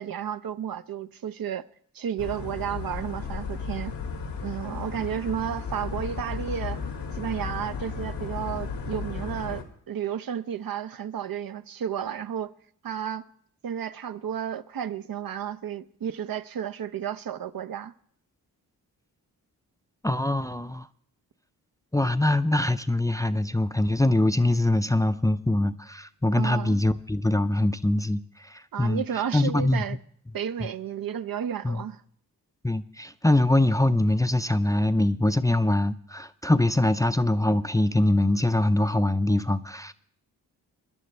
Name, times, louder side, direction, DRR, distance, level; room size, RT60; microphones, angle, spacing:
voice 1, 0.0-1.6 1.9-4.0 4.4-6.8 7.1-12.5 12.8-13.3 13.6-17.9 26.3-26.8 28.7-30.0 30.3-32.0, right 9 dB, 60° right, 0.6 m, -32 dB
sound 1, 2.2-9.6, left 5 dB, 85° left, 1.6 m, -34 dB
voice 2, 20.0-20.9 21.9-29.0 29.3-29.8 31.6-31.8 32.6-39.9, left 1 dB, 10° left, 0.5 m, -23 dB
23.5 x 10.5 x 3.3 m
cardioid pair, 50°, 40 cm